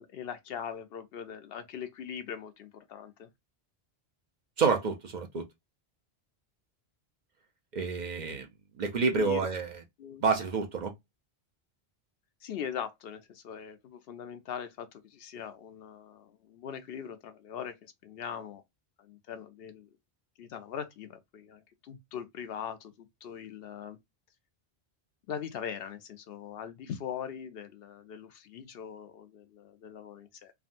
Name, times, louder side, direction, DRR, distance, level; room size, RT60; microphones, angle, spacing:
voice 1, 0.0-3.3 9.2-9.5 10.0-10.2 12.4-18.6 19.0-19.9 20.4-24.0 25.3-30.5, left 8 dB, 70° left, 0.7 m, -41 dB
voice 2, 4.6-5.4 7.7-8.5 8.8-9.8 10.2-10.9, right 4 dB, 55° right, 0.6 m, -28 dB
3.5 x 2.1 x 2.5 m
omnidirectional pair, 1.1 m